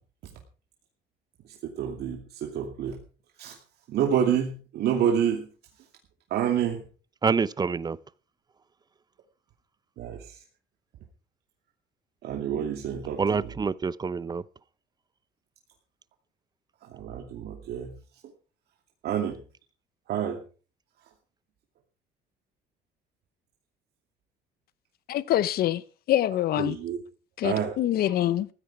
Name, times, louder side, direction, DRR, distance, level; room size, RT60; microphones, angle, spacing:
voice 1, 1.6-3.0 3.4-3.6 3.9-5.5 6.3-6.8 10.0-10.4 12.2-13.5 16.9-17.9 19.0-19.4 20.1-20.4 26.6-27.0 27.4-28.1, right 9 dB, 70° right, 2.5 m, -28 dB
voice 2, 7.2-8.0 13.2-14.4, right 5 dB, 25° right, 0.7 m, -26 dB
voice 3, 25.1-25.8 26.1-26.8 27.4-28.5, left 13 dB, 65° left, 0.9 m, -25 dB
15.5 x 13.0 x 4.7 m
cardioid pair, 110°, 17 cm